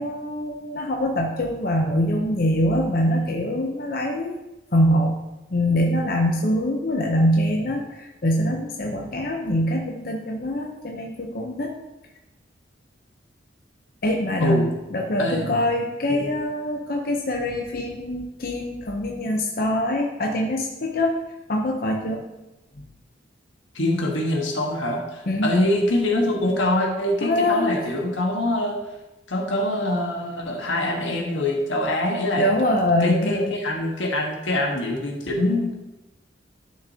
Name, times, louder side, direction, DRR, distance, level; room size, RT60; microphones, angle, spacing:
voice 1, 0.0-4.4 4.7-5.2 5.5-11.7 14.0-21.2 21.5-22.3 22.8-22.9 25.3-25.5 27.2-27.7 32.4-33.5, left 1 dB, 50° left, 1 dB, 0.7 m, -24 dB
voice 2, 14.4-14.7 15.2-15.5 16.1-16.3 23.7-28.8 29.3-32.5 33.0-35.7, left 1 dB, 90° left, 0 dB, 1.5 m, -24 dB
11.5 x 6.4 x 2.8 m, 1.0 s
head